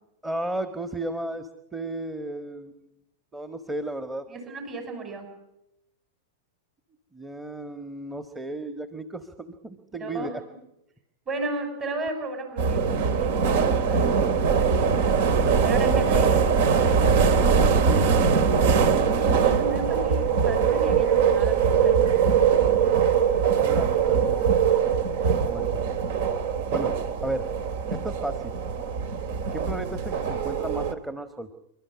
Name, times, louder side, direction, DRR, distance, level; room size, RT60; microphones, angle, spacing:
voice 1, 0.2-2.8 3.3-4.2 7.1-10.3 15.3-15.6 17.6-18.5 23.5-24.6 25.4-25.7 26.7-27.0 27.2-27.5 27.9-28.5 29.5-31.5, right 1 dB, 10° right, 9 dB, 1.5 m, -34 dB
voice 2, 4.3-5.3 10.0-10.3 11.3-14.5 15.6-16.4 19.1-22.8, right 3 dB, 30° right, 5 dB, 5.8 m, -34 dB
sound 1, 12.6-30.9, right 6 dB, 60° right, 2.1 m, -22 dB
28.5 x 12.5 x 9.6 m, 0.86 s
hypercardioid pair, 105°, 0 cm